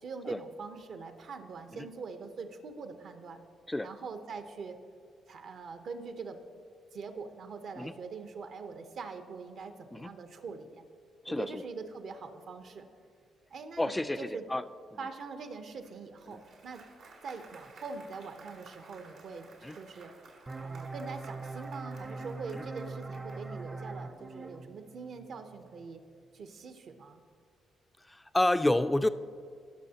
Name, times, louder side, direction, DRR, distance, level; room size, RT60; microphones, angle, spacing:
voice 1, 0.0-3.4 3.8-4.8 5.3-6.4 6.9-10.8 11.3-12.9 13.5-14.5 15.0-16.9 17.2-20.1 20.6-26.0 26.3-27.2, right 4 dB, 60° right, 7 dB, 0.9 m, -43 dB
voice 2, 11.2-11.6 13.8-14.6 16.3-16.4 19.6-19.8 22.5-22.6 28.1-29.1, left 1 dB, 10° left, 12 dB, 0.4 m, -29 dB
Applause, 15.8-23.7, right 3 dB, 80° right, 2.4 m, -56 dB
sound 1, 20.5-25.9, right 3 dB, 25° right, 0.7 m, -42 dB
18.0 x 6.2 x 2.9 m, 2.1 s
cardioid pair, 90°, 0 cm